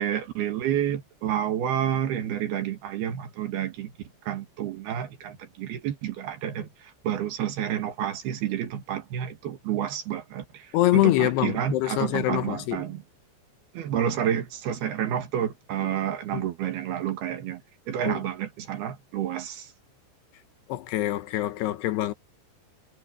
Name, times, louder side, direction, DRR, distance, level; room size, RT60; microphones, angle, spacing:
voice 1, 0.0-3.9 4.2-13.0 13.7-17.6 17.9-19.7, right 10 dB, 65° right, 3.4 m, -29 dB
voice 2, 10.7-12.8 16.3-16.4 18.0-18.2 20.7-22.1, left 16 dB, 75° left, 2.8 m, -25 dB
omnidirectional pair, 5.1 m